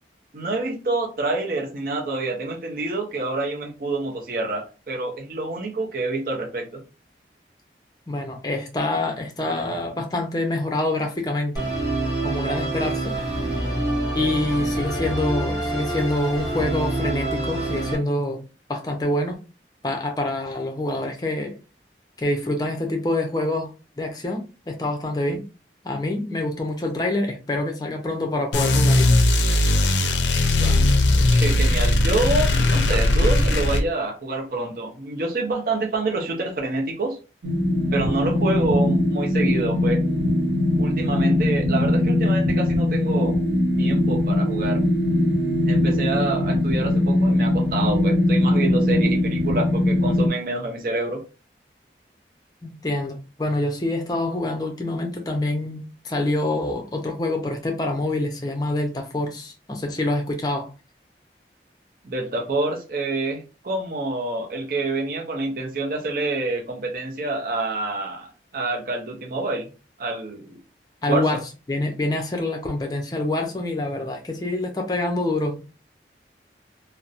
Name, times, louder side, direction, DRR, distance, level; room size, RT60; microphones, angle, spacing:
voice 1, 0.3-6.8 30.5-30.8 31.3-37.2 37.9-40.0 40.8-43.4 43.8-44.8 45.7-51.2 62.0-69.7 70.0-70.6 71.1-71.3, right 2 dB, 50° right, 0.5 m, -27 dB
voice 2, 8.1-11.7 12.2-13.8 14.1-18.4 18.7-19.4 19.8-21.6 22.2-23.7 24.0-25.4 25.8-29.1 52.6-60.7 71.0-71.4 71.7-75.7, left 2 dB, 20° left, 0.5 m, -26 dB
Musical instrument, 11.6-18.0, right 1 dB, 15° right, 1.0 m, -26 dB
sound 1, 28.5-33.8, left 1 dB, 90° left, 0.4 m, -18 dB
sound 2, 37.4-50.3, left 1 dB, 90° right, 0.7 m, -21 dB
2.8 x 2.0 x 2.4 m
head